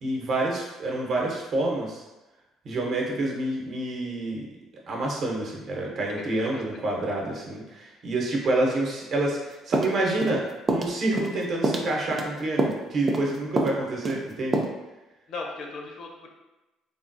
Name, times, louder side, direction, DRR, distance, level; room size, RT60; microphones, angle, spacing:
voice 1, 0.0-2.0 2.6-4.5 4.9-14.6, right 2 dB, 55° right, -2 dB, 0.8 m, -28 dB
voice 2, 6.2-6.6 15.3-16.3, left 3 dB, 60° left, 1 dB, 0.6 m, -37 dB
sound 1, 9.7-10.4 10.7-10.9 11.2-11.4 11.6-12.3 12.6-12.8 13.1-13.3 13.6-13.8 14.0-14.2 14.5-14.6, right 2 dB, 25° right, 0.4 m, -26 dB
3.4 x 2.3 x 2.6 m, 1.0 s
cardioid pair, 100°, 0 cm